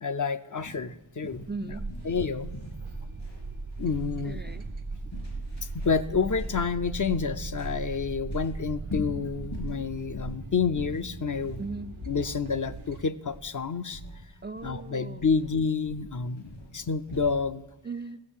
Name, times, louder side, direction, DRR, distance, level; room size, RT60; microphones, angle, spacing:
voice 1, 0.0-1.5 2.0-2.5 3.8-4.4 5.7-11.6 12.1-14.0 14.6-17.7, left 5 dB, 40° left, 11 dB, 0.5 m, -29 dB
sound 1, 0.6-17.4, left 1 dB, 70° left, 4.1 m, -42 dB
voice 2, 1.5-1.9 4.2-4.7 11.6-12.0 14.4-15.3 17.8-18.2, right 3 dB, 25° right, 8 dB, 0.3 m, -38 dB
sound 2, 1.7-13.0, right 3 dB, 90° right, 1.0 m, -39 dB
15.5 x 6.9 x 7.2 m, 1.1 s
wide cardioid pair, 60°, 47 cm